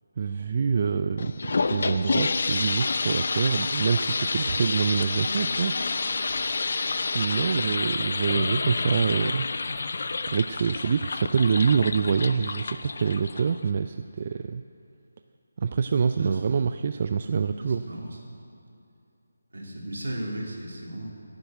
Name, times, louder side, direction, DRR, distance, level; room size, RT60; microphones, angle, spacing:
voice 1, 0.2-5.8 7.1-9.5 10.3-14.6 15.6-17.8, right 6 dB, 40° right, 9 dB, 0.4 m, -26 dB
sound 1, 1.2-13.7, left 4 dB, 55° left, 0.6 m, -29 dB
voice 2, 17.6-18.2 19.5-21.2, right 1 dB, 70° right, -2 dB, 3.0 m, -35 dB
11.0 x 7.7 x 9.1 m, 2.8 s
figure-of-eight pair, 160°, 0 cm